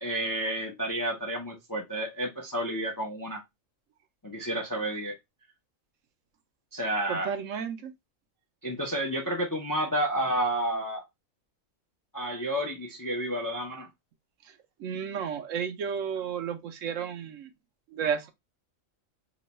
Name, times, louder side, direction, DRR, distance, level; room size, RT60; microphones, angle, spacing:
voice 1, 0.0-3.4 4.2-5.1 6.7-7.3 8.6-11.0 12.1-13.9, right 1 dB, 30° left, 0.4 m, -30 dB
voice 2, 7.1-7.9 14.8-17.5 17.9-18.3, right 7 dB, 70° right, 0.9 m, -32 dB
3.0 x 2.2 x 4.0 m
omnidirectional pair, 1.4 m